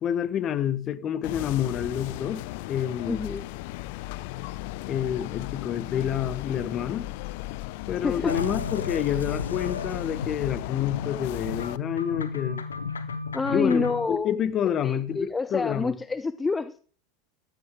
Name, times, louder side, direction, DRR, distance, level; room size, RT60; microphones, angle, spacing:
voice 1, 0.0-3.2 4.9-7.1 7.9-12.6 13.5-16.0, left 9 dB, 35° left, 1.5 m, -28 dB
sound 1, 1.2-11.8, left 17 dB, 60° left, 0.6 m, -36 dB
voice 2, 3.1-3.4 8.0-8.3 13.3-14.3 14.8-16.8, left 4 dB, 15° left, 0.6 m, -27 dB
sound 2, 8.3-14.1, left 5 dB, 85° left, 1.2 m, -34 dB
15.0 x 13.0 x 3.7 m
figure-of-eight pair, 85°, 0 cm